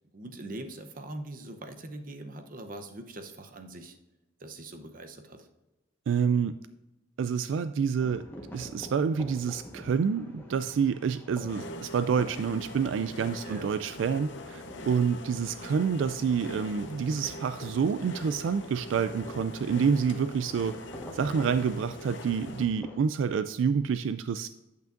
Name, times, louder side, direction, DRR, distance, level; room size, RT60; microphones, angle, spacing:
voice 1, 0.1-4.0 4.4-5.5 13.4-13.8, right 1 dB, 45° right, 7 dB, 0.8 m, -42 dB
voice 2, 6.1-6.6 7.2-8.2 8.5-20.7 21.1-24.5, right 6 dB, 80° right, 12 dB, 0.3 m, -28 dB
sound 1, 8.0-23.0, equal, 10° left, 1.3 m, -49 dB
sound 2, 11.5-22.7, left 1 dB, 70° left, 0.7 m, -43 dB
9.1 x 8.1 x 2.5 m, 1.0 s
head